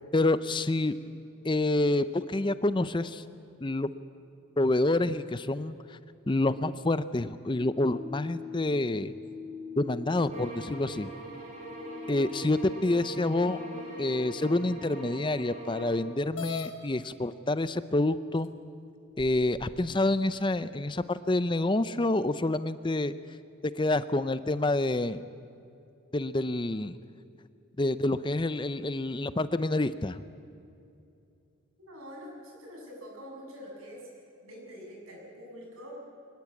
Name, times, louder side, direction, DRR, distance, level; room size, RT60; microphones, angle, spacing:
voice 1, 0.1-0.9 1.4-3.2 3.6-3.9 4.6-5.8 6.3-9.1 9.8-11.1 12.1-13.6 14.0-18.5 19.2-23.1 23.8-25.2 26.1-27.0 27.8-30.2, left 2 dB, 20° left, 14 dB, 0.5 m, -27 dB
sound 1, 7.5-16.0, left 4 dB, 5° left, 6.2 m, -44 dB
sound 2, 10.3-16.1, right 2 dB, 30° right, 6.5 m, -43 dB
sound 3, 16.3-16.7 17.7-17.8 18.4-18.5 19.2-19.9, left 5 dB, 70° left, 2.0 m, -38 dB
voice 2, 31.8-34.1 34.4-35.9, equal, 85° right, -1 dB, 7.7 m, -45 dB
24.0 x 20.0 x 8.5 m, 2.6 s
head